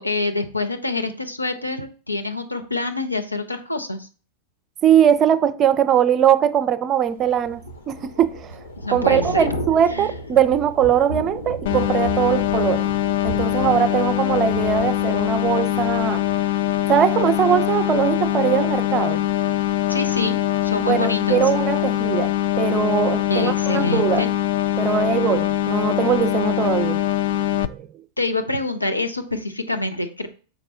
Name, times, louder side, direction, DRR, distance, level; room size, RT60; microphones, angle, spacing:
voice 1, 0.0-4.1 8.8-9.5 9.9-10.1 19.9-21.4 23.3-24.3 28.2-30.3, left 2 dB, 85° left, 0.7 m, -26 dB
voice 2, 4.8-7.6 7.9-8.6 8.9-12.9 13.2-16.2 16.9-19.2 20.9-24.3 24.8-27.0 27.7-27.9, right 9 dB, 30° right, 0.4 m, -20 dB
Thunder / Rain, 7.2-17.1 17.5-17.7, equal, 70° left, 1.3 m, -33 dB
sound 1, 11.7-27.7, left 13 dB, 55° left, 0.3 m, -22 dB
6.3 x 5.0 x 3.4 m
figure-of-eight pair, 90°, 0 cm